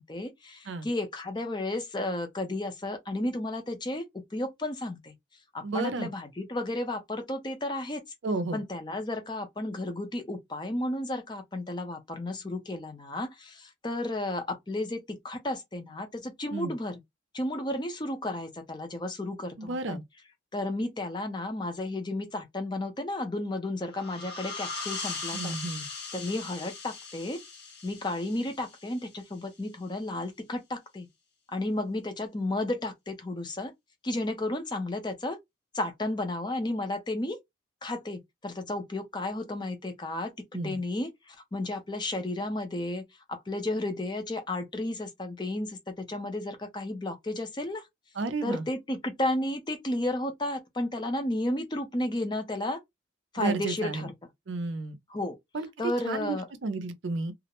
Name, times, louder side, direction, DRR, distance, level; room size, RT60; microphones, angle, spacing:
voice 1, 0.0-5.1 5.5-8.0 8.5-17.0 17.3-20.0 20.5-25.6 26.1-27.4 27.8-31.1 31.5-33.7 34.0-35.4 35.7-37.4 37.8-40.3 40.6-47.9 48.4-52.8 53.3-54.1 55.1-55.4 55.8-56.5, left 1 dB, 25° left, 0.5 m, -33 dB
voice 2, 5.6-6.1 8.2-8.6 16.5-16.7 19.6-20.0 25.3-25.9 40.5-40.8 48.2-48.7 53.4-54.1 54.5-55.0 55.5-55.7 56.0-57.3, right 3 dB, 70° right, 0.5 m, -32 dB
sound 1, 23.9-29.3, left 4 dB, 60° left, 0.8 m, -39 dB
2.4 x 2.0 x 2.9 m
head